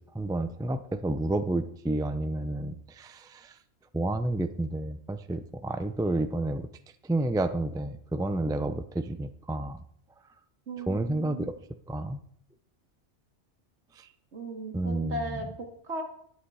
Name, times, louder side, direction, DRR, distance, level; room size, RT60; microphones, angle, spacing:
voice 1, 0.1-3.5 3.9-6.7 7.1-9.8 10.9-11.6 11.9-12.2 14.0-14.1 14.7-15.2, right 2 dB, 5° right, 11 dB, 0.4 m, -30 dB
voice 2, 10.7-11.5 14.3-16.0, right 2 dB, 75° right, 2 dB, 2.4 m, -37 dB
11.5 x 10.5 x 4.8 m, 0.66 s
omnidirectional pair, 1.2 m